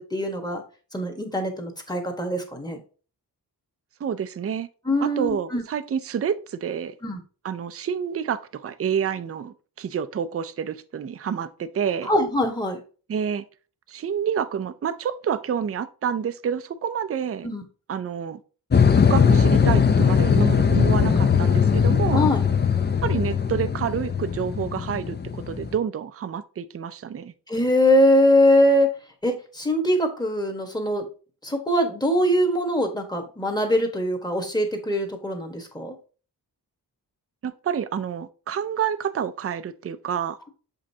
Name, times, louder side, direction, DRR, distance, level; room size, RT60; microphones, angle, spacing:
voice 1, 0.1-0.6 0.9-2.8 4.9-5.6 7.0-7.2 12.1-12.8 17.4-17.6 22.1-22.4 27.5-28.9 29.2-31.1 31.4-36.0, left 1 dB, 10° left, 1.2 m, -22 dB
voice 2, 4.0-4.7 5.0-7.0 7.4-12.1 13.1-13.4 13.9-17.5 17.9-18.4 19.1-22.3 23.0-27.3 37.4-40.4, right 7 dB, 35° right, 0.4 m, -28 dB
sound 1, 18.7-25.8, left 6 dB, 25° left, 0.4 m, -20 dB
7.1 x 5.2 x 2.7 m
wide cardioid pair, 120°, 40 cm